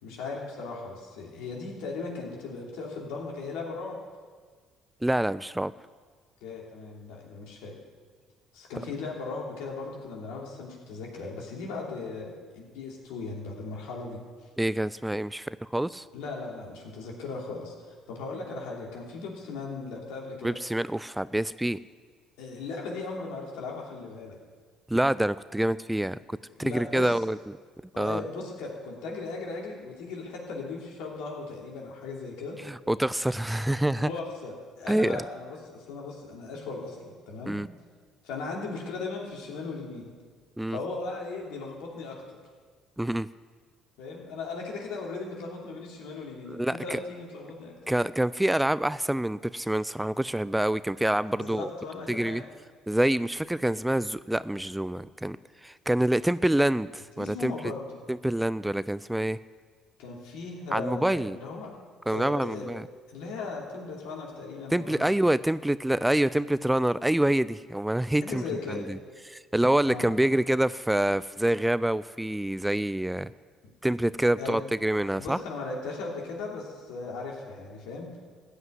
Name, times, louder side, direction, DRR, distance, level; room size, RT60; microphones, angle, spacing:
voice 1, 0.0-4.0 6.4-7.7 8.5-14.2 16.1-17.7 18.1-20.6 22.4-24.4 26.6-27.1 27.9-32.6 33.9-37.6 38.2-40.1 40.7-42.4 44.0-47.9 51.3-52.4 57.2-58.0 60.0-61.7 62.1-62.7 63.1-65.1 68.2-68.8 69.8-70.2 74.4-74.6 75.1-78.1, left 3 dB, 80° left, -2 dB, 3.0 m, -37 dB
voice 2, 5.0-5.7 14.6-16.1 20.4-21.8 24.9-27.6 28.0-28.2 32.6-34.1 34.9-35.2 37.5-37.7 40.6-40.8 43.0-43.3 46.6-47.0 47.9-51.7 52.1-52.4 52.9-55.4 55.6-57.5 58.1-59.4 60.7-61.4 62.1-62.9 64.7-68.4 68.7-69.0 69.3-73.3 73.8-75.4, right 1 dB, 5° right, 17 dB, 0.3 m, -26 dB
15.0 x 5.8 x 9.4 m, 1.5 s
supercardioid pair, 70°, 0 cm